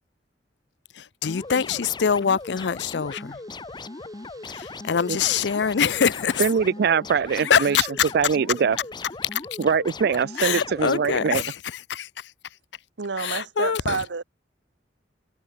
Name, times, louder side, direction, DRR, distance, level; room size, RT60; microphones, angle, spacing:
voice 1, 0.9-3.4 4.5-6.5 7.4-8.1 9.3-9.4 10.3-12.6 13.2-14.0, left 7 dB, 70° left, 0.5 m, -24 dB
sound 1, 1.3-11.4, left 3 dB, 25° left, 0.8 m, -38 dB
sound 2, 1.3-7.2, right 4 dB, 20° right, 4.0 m, -56 dB
voice 2, 6.4-7.8 8.1-8.8 9.6-11.4, right 6 dB, 60° right, 0.4 m, -22 dB
voice 3, 13.0-14.2, right 4 dB, 80° right, 0.9 m, -29 dB
head